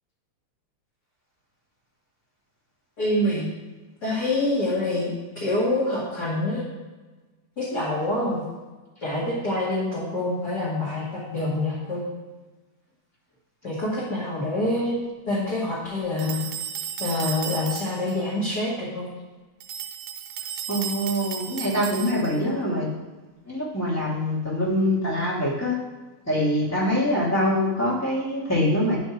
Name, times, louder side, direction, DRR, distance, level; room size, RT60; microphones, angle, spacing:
voice 1, 3.0-3.5 4.0-6.6 7.6-8.4 9.0-12.1 13.6-16.4 17.0-19.1, left 1 dB, 35° left, -7 dB, 2.3 m, -26 dB
sound 1, 16.2-18.2 19.6-22.5, right 9 dB, 80° right, 2.2 m, -34 dB
voice 2, 20.7-22.9 23.4-25.7 26.3-29.0, left 1 dB, 5° left, -6 dB, 1.6 m, -24 dB
11.0 x 4.3 x 6.0 m, 1.2 s
omnidirectional pair, 3.7 m